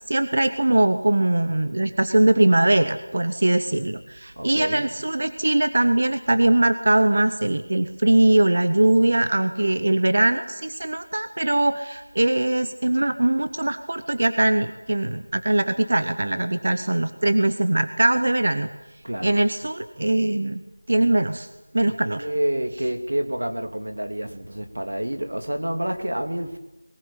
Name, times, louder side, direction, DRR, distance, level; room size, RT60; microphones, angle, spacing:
voice 1, 0.1-18.7 19.2-20.6 20.9-21.5 21.7-22.3, right 1 dB, 35° right, 0.9 m, -21 dB
voice 2, 4.4-4.9 19.0-19.4 21.8-26.6, right 1 dB, 75° right, 2.8 m, -28 dB
22.0 x 19.5 x 9.9 m
figure-of-eight pair, 180°, 0 cm